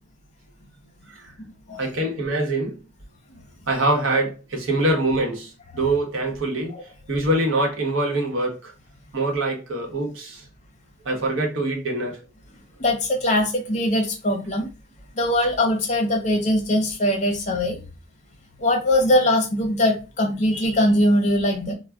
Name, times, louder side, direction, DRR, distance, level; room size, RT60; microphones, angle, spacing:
voice 1, 1.8-2.8 3.7-6.7 7.1-8.7 9.1-10.4 11.0-12.2, right 2 dB, 75° right, 0.9 m, -24 dB
voice 2, 12.8-14.7 15.1-17.8 18.6-21.7, left 1 dB, 35° left, 0.6 m, -21 dB
2.2 x 2.1 x 3.5 m
head